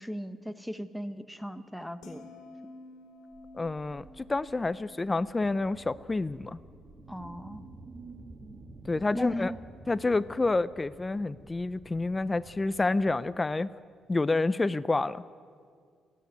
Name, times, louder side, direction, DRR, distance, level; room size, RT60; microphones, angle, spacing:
voice 1, 0.0-2.3 7.1-7.6 9.1-9.6, equal, ahead, 9 dB, 1.3 m, -37 dB
sound 1, 2.0-8.3 8.6-9.0, left 2 dB, 75° left, 2.6 m, -53 dB
sound 2, 3.3-13.3, right 1 dB, 55° right, 7.0 m, -55 dB
voice 2, 3.5-6.6 8.9-9.5 9.9-13.7 14.1-15.2, left 3 dB, 20° left, 17 dB, 0.5 m, -28 dB
sound 3, 6.5-11.4, right 3 dB, 40° right, 2.0 m, -50 dB
29.0 x 10.5 x 9.6 m, 2.1 s
cardioid pair, 90°, 0 cm